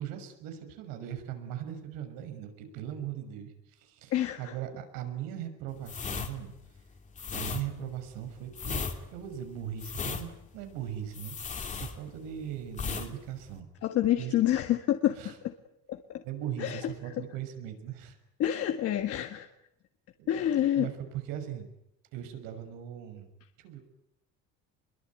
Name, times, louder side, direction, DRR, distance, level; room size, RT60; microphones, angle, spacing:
voice 1, 0.0-6.5 7.3-8.9 9.1-13.7 14.2-14.3 15.1-15.4 16.2-18.2 20.2-21.7 22.1-23.3 23.6-23.8, right 10 dB, 85° right, 7 dB, 6.1 m, -39 dB
sound 1, 5.8-12.4 12.7-13.1 13.4-13.6, left 5 dB, 20° left, 2.6 m, -36 dB
voice 2, 13.8-15.2 15.9-16.0 16.6-16.8 18.4-19.5 20.3-20.9, left 12 dB, 45° left, 6 dB, 1.7 m, -27 dB
27.5 x 22.5 x 9.5 m, 0.81 s
cardioid pair, 180°, 33 cm